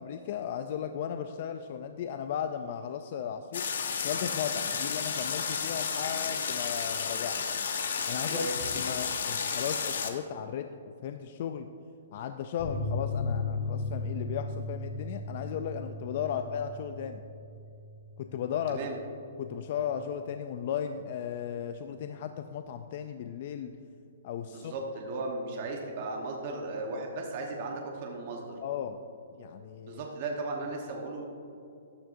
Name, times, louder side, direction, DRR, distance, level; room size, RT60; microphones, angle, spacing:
voice 1, 0.0-3.7 4.0-7.4 8.1-11.7 12.1-17.2 18.2-18.8 19.4-23.8 24.2-24.7 28.6-29.0 29.3-30.0, left 8 dB, 35° left, 8 dB, 0.3 m, -36 dB
sound 1, 3.5-10.1, left 6 dB, 60° left, 0.9 m, -32 dB
voice 2, 8.3-8.7 16.2-16.4 18.7-19.0 24.4-28.6 29.8-31.2, right 3 dB, 30° right, 0 dB, 1.0 m, -36 dB
sound 2, 12.6-19.7 20.0-20.1 20.4-20.5, left 3 dB, 5° left, 1.9 m, -36 dB
13.5 x 9.7 x 2.6 m, 2.7 s
hypercardioid pair, 180°, 0 cm